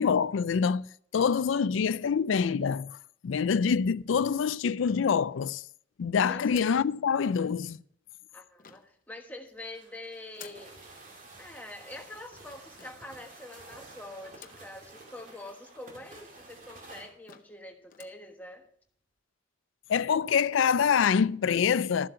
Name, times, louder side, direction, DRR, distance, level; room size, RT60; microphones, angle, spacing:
voice 1, 0.0-3.0 3.2-5.6 6.0-7.8 19.9-22.1, left 6 dB, 80° left, 0.4 m, -26 dB
sound 1, 4.8-5.6 6.5-6.9 8.6-9.0 10.3-10.7 12.8-13.2 14.3-14.7 15.2-15.3 15.5-15.6 16.4-16.5 16.9-17.0 17.3-17.6 17.9-18.2, left 8 dB, 45° left, 0.8 m, -52 dB
voice 2, 6.3-6.6 8.3-10.8 11.4-18.7, left 1 dB, 10° left, 1.3 m, -45 dB
sound 2, 8.5-8.7 9.2-16.3 16.8-16.9 17.7-17.8 18.3-18.4 18.9-19.1, right 2 dB, 70° right, 4.2 m, -60 dB
sound 3, 10.5-17.1, right 2 dB, 40° right, 2.5 m, -51 dB
13.5 x 7.5 x 5.6 m
head